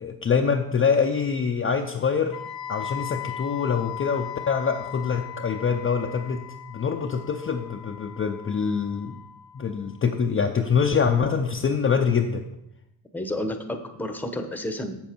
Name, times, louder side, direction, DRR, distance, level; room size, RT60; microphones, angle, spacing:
voice 1, 0.0-2.4 2.7-6.4 6.7-9.2 9.5-12.4, left 6 dB, 30° left, 2 dB, 0.6 m, -24 dB
Wind instrument woodwind instrument, 2.3-10.2, left 10 dB, 50° left, 0.9 m, -38 dB
voice 2, 13.1-15.0, left 1 dB, 5° left, 6 dB, 0.9 m, -31 dB
7.6 x 7.3 x 4.5 m, 0.81 s
cardioid pair, 95°, 46 cm